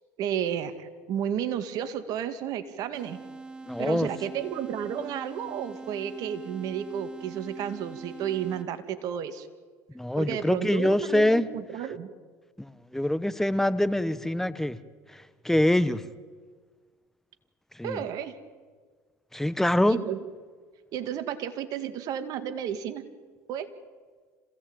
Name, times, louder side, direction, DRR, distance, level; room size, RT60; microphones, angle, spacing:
voice 1, 0.2-3.2 3.8-9.5 10.2-12.1 17.8-18.3 19.9-20.2 20.9-23.0 23.5-23.7, right 9 dB, 65° right, 10 dB, 2.2 m, -32 dB
sound 1, 2.9-9.0, right 3 dB, 10° right, 1.4 m, -43 dB
voice 2, 3.6-4.1 9.9-11.4 12.6-14.8 15.1-16.0 17.7-18.1 19.3-20.0, left 1 dB, 5° left, 15 dB, 1.4 m, -25 dB
26.5 x 17.0 x 9.0 m, 1.5 s
supercardioid pair, 80°, 7 cm